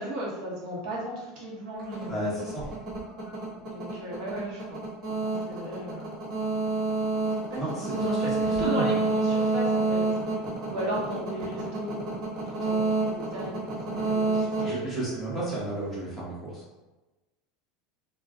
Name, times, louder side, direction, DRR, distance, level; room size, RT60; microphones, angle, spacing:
voice 1, 0.0-2.2 3.6-4.8 5.2-6.1 7.5-7.6 7.9-10.2 10.7-12.1 12.5-14.9, equal, 50° right, -5 dB, 0.9 m, -35 dB
sound 1, 1.8-15.6, right 3 dB, 30° right, 1.2 m, -29 dB
voice 2, 2.1-2.7 7.5-7.9 8.6-8.9 14.6-16.6, right 2 dB, 5° left, -8 dB, 1.0 m, -32 dB
2.4 x 2.2 x 3.6 m, 1.1 s
supercardioid pair, 150°, 0 cm